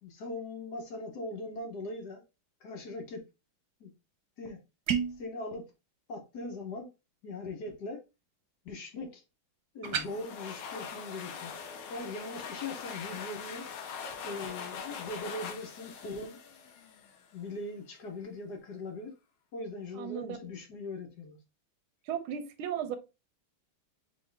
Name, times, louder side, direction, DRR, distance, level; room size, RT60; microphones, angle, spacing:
voice 1, 0.0-2.2 2.6-3.2 3.8-3.9 4.4-4.6 5.2-5.6 6.1-6.9 7.2-8.0 8.6-9.2 9.7-11.5 11.9-13.6 14.2-16.4 17.3-19.1 19.5-21.4, left 2 dB, 55° left, 1.5 m, -40 dB
sound 1, 4.9-5.3 9.8-10.1, right 8 dB, 60° right, 1.2 m, -30 dB
sound 2, 9.8-17.3, left 6 dB, 80° left, 1.6 m, -42 dB
voice 2, 19.9-20.4 22.1-23.0, right 9 dB, 90° right, 1.5 m, -35 dB
4.4 x 3.6 x 3.3 m
omnidirectional pair, 2.2 m